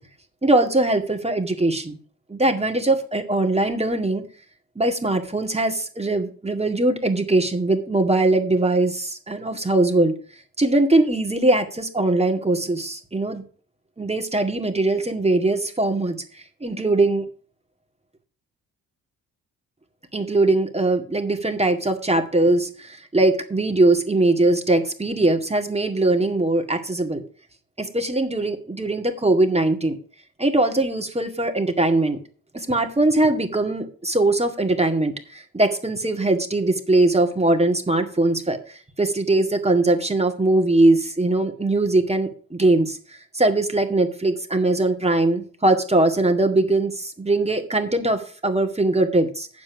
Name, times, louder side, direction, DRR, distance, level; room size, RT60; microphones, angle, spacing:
voice 1, 0.4-2.0 2.3-4.2 4.8-10.1 10.6-13.4 14.0-16.2 16.6-17.3 20.1-27.2 27.8-30.0 30.4-32.2 32.5-43.0 43.3-49.5, right 2 dB, 15° right, 5 dB, 2.0 m, -21 dB
8.7 x 7.6 x 6.1 m, 0.40 s
supercardioid pair, 55°, 36 cm